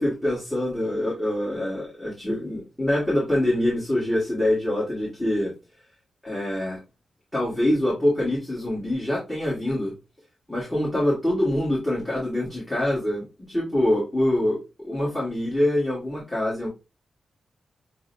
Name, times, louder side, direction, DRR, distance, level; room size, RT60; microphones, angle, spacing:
voice 1, 0.0-5.5 6.2-6.8 7.3-9.9 10.5-16.7, left 1 dB, 5° left, -7 dB, 1.4 m, -25 dB
6.1 x 2.0 x 2.5 m, 0.27 s
wide cardioid pair, 170°, 0 cm